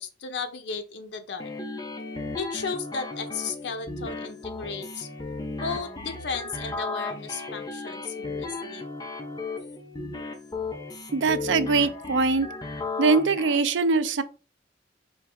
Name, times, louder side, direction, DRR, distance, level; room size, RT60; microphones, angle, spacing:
voice 1, 0.0-1.5 2.4-5.1 5.6-8.8, left 5 dB, 70° left, 0.7 m, -34 dB
sound 1, 1.4-13.6, left 3 dB, 20° left, 0.7 m, -35 dB
voice 2, 11.1-12.5 13.0-14.2, right 4 dB, 85° right, 0.5 m, -22 dB
4.6 x 2.8 x 3.5 m
head